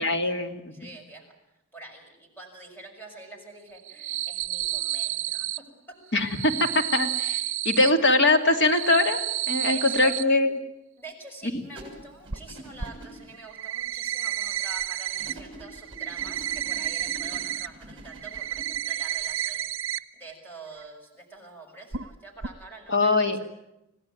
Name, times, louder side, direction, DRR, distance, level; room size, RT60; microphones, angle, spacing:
voice 1, 0.0-0.7 6.1-9.2 9.5-10.6 22.9-23.4, left 2 dB, 60° left, 6 dB, 2.8 m, -22 dB
voice 2, 0.7-1.3 1.7-6.0 7.8-7.9 9.6-10.2 11.0-19.7 20.1-23.5, right 3 dB, 10° left, 2 dB, 6.3 m, -46 dB
sound 1, 3.8-5.6 6.2-7.9 8.5-10.2 12.3-12.4 12.8-12.9 13.3-15.3 15.6-17.7 18.0-20.0 20.3-20.4 20.8-20.9 21.9-22.1 22.4-22.5, right 12 dB, 65° right, 1.0 m, -31 dB
sound 2, 11.7-13.3 15.2-18.8, right 1 dB, 25° right, 7.3 m, -44 dB
27.0 x 17.5 x 9.3 m, 0.88 s
head